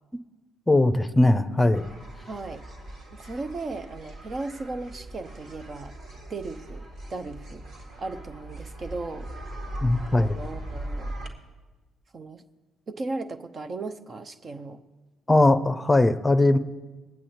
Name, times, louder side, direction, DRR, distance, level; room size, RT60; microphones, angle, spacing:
voice 1, 0.7-1.8 9.8-10.4 15.3-16.6, left 2 dB, 15° left, 10 dB, 0.8 m, -20 dB
sound 1, 1.7-11.3, right 1 dB, 55° right, 2.2 m, -39 dB
voice 2, 2.3-2.6 3.1-5.9 6.3-7.6 8.0-9.3 10.2-11.1 12.1-12.4 12.9-14.8, right 3 dB, 40° right, 8 dB, 0.9 m, -36 dB
21.0 x 8.9 x 4.3 m, 1.2 s
figure-of-eight pair, 45°, 0 cm